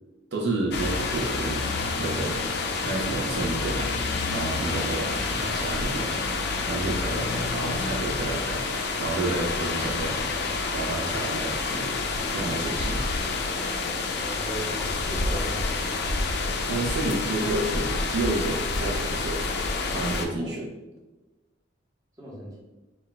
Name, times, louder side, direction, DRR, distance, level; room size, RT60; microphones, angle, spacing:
voice 1, 0.3-1.7 2.0-2.4 2.8-3.9 4.3-10.2 10.7-11.9 12.3-13.0 16.7-19.4 19.9-20.7, right 2 dB, 65° right, -2 dB, 0.5 m, -30 dB
sound 1, 0.7-20.3, left 3 dB, 60° left, 0.3 m, -28 dB
voice 2, 14.3-15.7 20.4-20.5 22.2-22.6, right 1 dB, 20° right, -5 dB, 0.8 m, -37 dB
2.2 x 2.2 x 3.8 m, 1.1 s
head